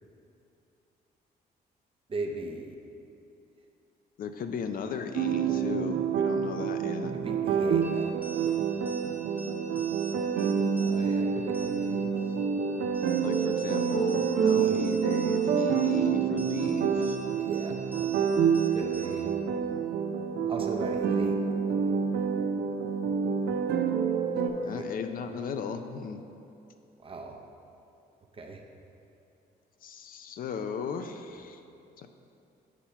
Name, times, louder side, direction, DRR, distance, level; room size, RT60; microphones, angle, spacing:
voice 1, 2.1-2.8 7.1-8.8 10.8-12.1 14.5-14.8 17.4-17.7 18.7-19.3 20.5-21.4 21.7-21.9 24.4-24.8 27.0-27.4 28.3-28.6, right 2 dB, 30° right, 2 dB, 0.7 m, -38 dB
voice 2, 4.2-7.1 13.2-17.2 24.6-26.2 29.8-31.6 32.0-32.1, left 6 dB, 55° left, 7 dB, 0.4 m, -36 dB
sound 1, 5.2-24.5, right 7 dB, 70° right, 0.5 m, -27 dB
sound 2, 7.8-19.4, right 3 dB, 10° right, 0.9 m, -47 dB
8.1 x 2.8 x 5.6 m, 2.7 s
cardioid pair, 95°, 17 cm